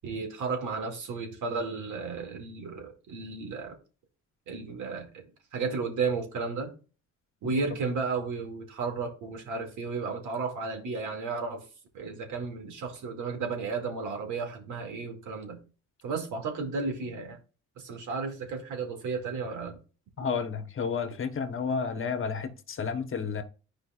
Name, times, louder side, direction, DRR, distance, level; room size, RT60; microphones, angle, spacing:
voice 1, 0.0-3.8 4.5-5.2 5.5-6.7 7.4-11.6 11.9-15.6 16.0-17.4 17.8-19.8, right 4 dB, 75° right, 2.3 m, -33 dB
voice 2, 20.2-23.4, left 6 dB, 45° left, 1.1 m, -31 dB
10.5 x 5.0 x 2.4 m
cardioid pair, 90°, 30 cm